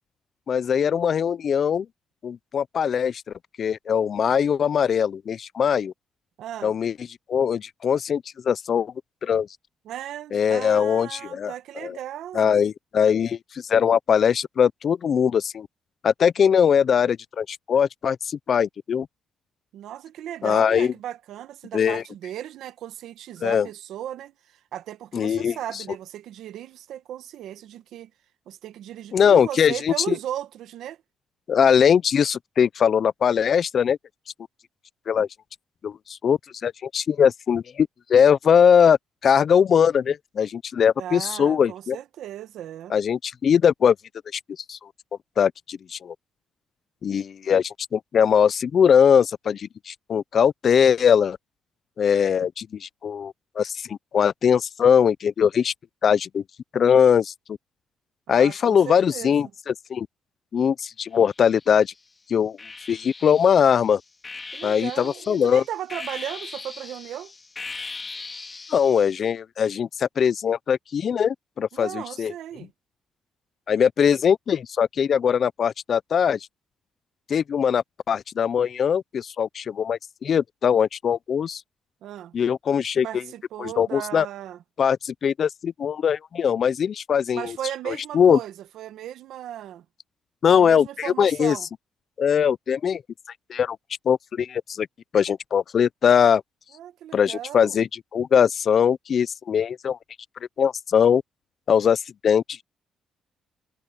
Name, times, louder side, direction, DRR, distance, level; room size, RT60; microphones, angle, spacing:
voice 1, 0.5-1.9 2.2-3.2 3.6-5.9 6.6-6.9 7.3-8.9 9.2-9.5 10.3-11.5 11.8-12.0 12.3-15.7 16.0-19.1 20.4-20.9 21.7-22.0 23.4-23.7 25.1-25.8 29.1-30.2 31.5-34.0 35.1-35.3 35.8-39.0 39.2-42.0 42.9-44.0 44.3-44.4 44.7-44.8 45.4-46.1 47.0-51.4 52.0-55.7 56.0-56.4 56.7-57.3 58.3-60.1 60.5-61.9 62.3-62.6 62.9-64.0 64.6-65.6 68.7-72.3 73.7-76.4 77.3-81.6 82.3-83.2 83.6-84.3 84.8-87.6 87.9-88.4 90.4-91.6 92.2-93.0 93.5-93.8 94.1-94.9 95.1-96.4 97.1-100.0 100.6-101.2 101.7-102.6, left 7 dB, 40° left, 0.3 m, -21 dB
voice 2, 6.4-6.8 9.8-12.6 19.7-28.1 28.5-31.0 41.0-43.0 58.3-59.5 64.5-67.3 71.7-72.7 82.0-82.3 83.0-84.6 87.3-89.8 90.5-91.7 96.7-97.8, right 11 dB, 70° right, 1.0 m, -36 dB
sound 1, 61.2-61.9 62.6-69.2, left 4 dB, 20° left, 2.4 m, -39 dB
cardioid pair, 155°, 0 cm